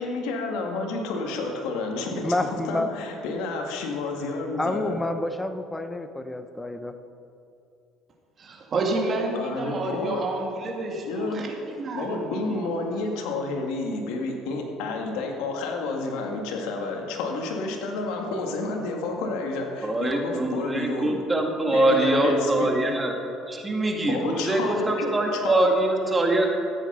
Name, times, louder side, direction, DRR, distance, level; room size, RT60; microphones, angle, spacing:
voice 1, 0.0-5.0 9.3-10.2 11.0-11.4 11.9-21.2 21.7-22.7 24.0-25.1 25.4-25.7, left 3 dB, 85° left, 1 dB, 2.0 m, -30 dB
voice 2, 2.2-2.9 4.6-6.9, left 2 dB, 10° left, 9 dB, 0.8 m, -28 dB
voice 3, 8.4-11.3 11.8-12.4, right 2 dB, 40° right, 0 dB, 2.4 m, -29 dB
voice 4, 19.8-23.1 23.5-26.5, right 1 dB, 20° right, 2 dB, 1.8 m, -23 dB
13.5 x 9.2 x 5.6 m, 2.7 s
cardioid pair, 110°, 0 cm